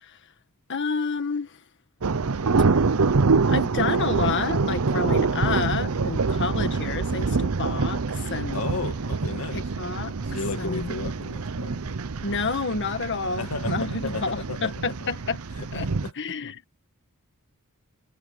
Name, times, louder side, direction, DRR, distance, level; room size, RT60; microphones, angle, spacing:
voice 1, 0.7-1.6 3.5-8.6 9.5-10.1 10.6-10.9 12.2-15.4 15.7-15.9 16.2-16.5, left 4 dB, 55° left, 1.6 m, -29 dB
sound 1, 2.0-16.1, right 4 dB, 70° right, 0.7 m, -26 dB
voice 2, 8.5-9.8 10.2-11.9 13.4-14.7 15.0-15.1 15.6-16.1 16.4-16.5, left 3 dB, 80° left, 1.9 m, -34 dB
head